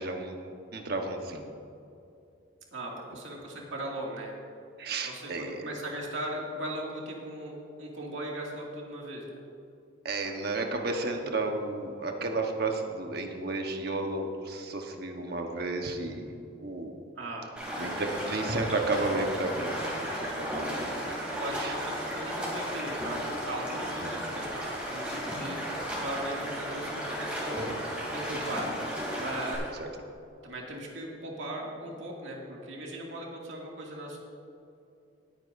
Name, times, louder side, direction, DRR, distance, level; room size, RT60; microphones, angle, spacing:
voice 1, 0.0-1.5 4.8-5.7 10.0-17.0 17.8-19.7 20.0-21.2 21.6-21.7 24.0-24.1 29.8-29.9, right 2 dB, 55° right, 3 dB, 1.1 m, -33 dB
voice 2, 2.7-4.3 5.0-9.2 17.2-17.4 17.8-17.9 20.6-20.9 21.3-25.6 26.0-27.7 28.1-28.7 29.1-29.7 30.4-34.2, right 1 dB, 70° right, -2 dB, 2.2 m, -38 dB
Stream, 17.6-29.6, equal, 5° right, 2.8 m, -34 dB
19.0 x 9.1 x 2.6 m, 2.7 s
head